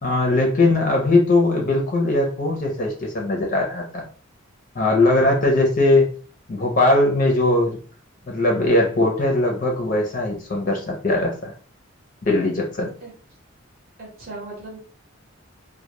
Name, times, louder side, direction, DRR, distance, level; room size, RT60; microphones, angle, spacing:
voice 1, 0.0-4.0 4.8-6.1 6.5-7.8 8.3-11.5 12.2-12.9, left 2 dB, 40° left, 1 dB, 0.5 m, -20 dB
voice 2, 14.0-14.8, right 2 dB, 45° right, -4 dB, 0.8 m, -37 dB
2.1 x 2.1 x 2.9 m, 0.41 s
head